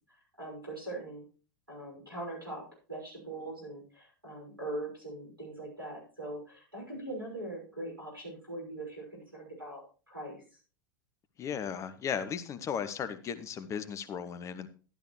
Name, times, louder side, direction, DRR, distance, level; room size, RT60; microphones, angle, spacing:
voice 1, 0.4-1.2 1.7-2.6 2.9-10.6, right 1 dB, 90° right, -1 dB, 6.0 m, -41 dB
voice 2, 11.4-14.7, left 7 dB, 25° left, 13 dB, 0.9 m, -36 dB
12.0 x 12.0 x 3.2 m, 0.36 s
figure-of-eight pair, 90°, 11 cm